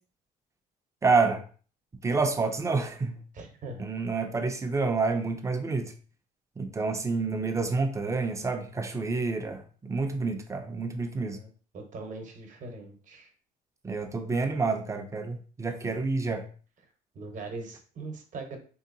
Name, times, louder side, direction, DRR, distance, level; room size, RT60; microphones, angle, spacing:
voice 1, 1.0-1.4 2.0-3.2 3.8-5.9 6.6-11.4 13.8-16.5, right 4 dB, 15° right, 0.5 m, -28 dB
voice 2, 3.3-3.9 10.7-10.8 11.3-13.3 17.1-18.6, right 3 dB, 50° right, 0.9 m, -41 dB
3.3 x 2.8 x 2.6 m
cardioid pair, 110°, 17 cm